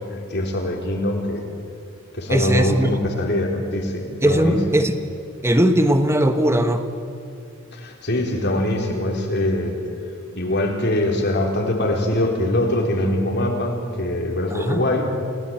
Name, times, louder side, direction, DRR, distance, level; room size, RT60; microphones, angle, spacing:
voice 1, 0.0-1.5 2.1-4.6 7.7-9.7 10.3-15.2, left 1 dB, 55° left, 2 dB, 4.1 m, -23 dB
voice 2, 2.3-2.9 4.2-4.9 5.4-6.8 14.5-14.8, right 1 dB, 15° right, 8 dB, 1.2 m, -19 dB
29.5 x 18.5 x 9.0 m, 2.5 s
head